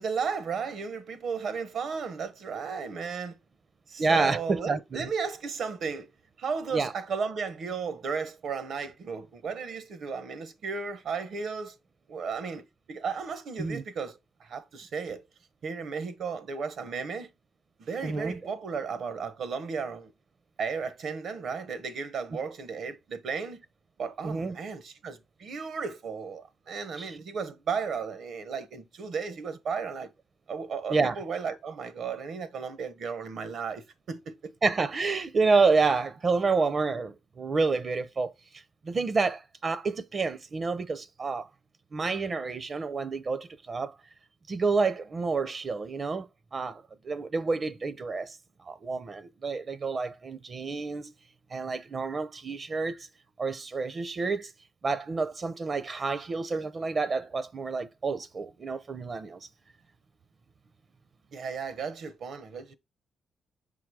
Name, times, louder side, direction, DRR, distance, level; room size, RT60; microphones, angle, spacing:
voice 1, 0.0-3.4 3.9-6.1 6.4-11.8 12.1-15.2 15.6-17.3 17.8-20.1 20.6-23.6 24.0-30.1 30.5-34.5 61.3-62.7, right 5 dB, 70° right, 0.9 m, -34 dB
voice 2, 4.0-5.1 6.7-6.9 13.6-13.8 18.0-18.4 22.3-22.4 24.2-24.6 27.0-27.2 30.9-31.2 34.6-38.3 38.8-41.5 41.9-43.9 44.5-48.4 48.6-51.1 51.5-53.1 53.4-54.5 54.8-59.4, right 4 dB, 45° right, 0.6 m, -29 dB
6.0 x 3.7 x 4.7 m
cardioid pair, 70°, 0 cm